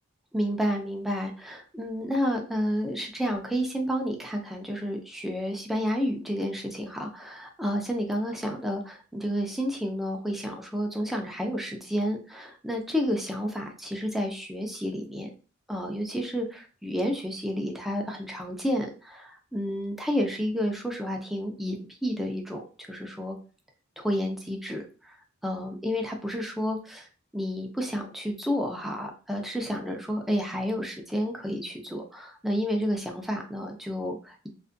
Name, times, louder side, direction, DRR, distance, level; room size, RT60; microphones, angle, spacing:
voice 1, 0.3-15.3 15.7-23.4 24.0-25.2 25.4-27.1 27.3-34.5, equal, ahead, 2 dB, 0.4 m, -30 dB
2.5 x 2.5 x 2.5 m, 0.36 s
head